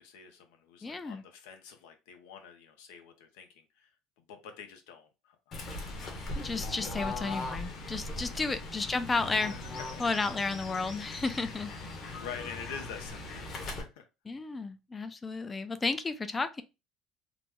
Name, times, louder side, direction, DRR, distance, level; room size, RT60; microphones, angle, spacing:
voice 1, 0.0-3.9 4.2-5.6 8.4-8.7 9.5-9.6 9.9-10.0 12.0-14.1, left 7 dB, 90° left, 0.7 m, -47 dB
voice 2, 0.8-1.2 6.4-9.5 10.0-11.7 14.3-16.6, left 3 dB, 20° left, 0.4 m, -32 dB
Fowl / Bird, 5.5-13.8, left 2 dB, 45° left, 1.0 m, -39 dB
3.0 x 2.0 x 3.4 m
cardioid pair, 125°, 0 cm